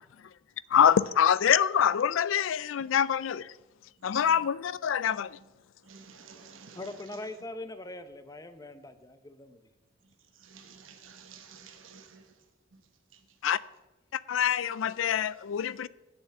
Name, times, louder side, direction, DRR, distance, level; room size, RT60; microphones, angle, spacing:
voice 1, 0.7-3.5 4.0-5.4 13.4-13.6 14.1-15.9, left 8 dB, 80° left, 0.4 m, -25 dB
voice 2, 5.9-6.8 10.4-12.3, right 5 dB, 85° right, 1.1 m, -51 dB
voice 3, 6.7-9.6, left 2 dB, 20° left, 0.7 m, -42 dB
8.0 x 6.9 x 8.3 m
head